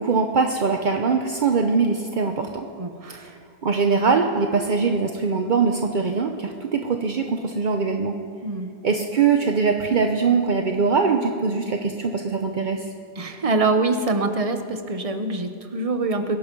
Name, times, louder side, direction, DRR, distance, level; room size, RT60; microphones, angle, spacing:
voice 1, 0.0-2.7 3.2-8.2 8.8-12.9, right 5 dB, 50° right, 4 dB, 0.6 m, -22 dB
voice 2, 2.8-3.3 8.4-8.7 13.2-16.4, right 3 dB, 25° right, 7 dB, 0.9 m, -24 dB
22.5 x 11.0 x 5.4 m, 2.3 s
omnidirectional pair, 1.7 m